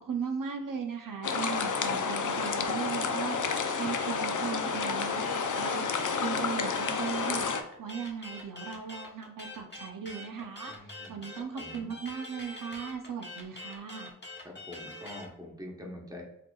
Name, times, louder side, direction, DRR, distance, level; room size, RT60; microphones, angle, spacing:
voice 1, 0.0-14.1, right 6 dB, 75° right, 3 dB, 0.5 m, -38 dB
sound 1, 1.2-7.6, left 5 dB, 65° left, 0.5 m, -30 dB
sound 2, 4.7-15.3, left 1 dB, 35° left, 1.0 m, -44 dB
voice 2, 10.7-11.2 11.5-11.9 14.4-16.2, left 1 dB, 10° right, -1 dB, 1.0 m, -45 dB
4.9 x 2.9 x 2.3 m, 0.79 s
wide cardioid pair, 50°, 33 cm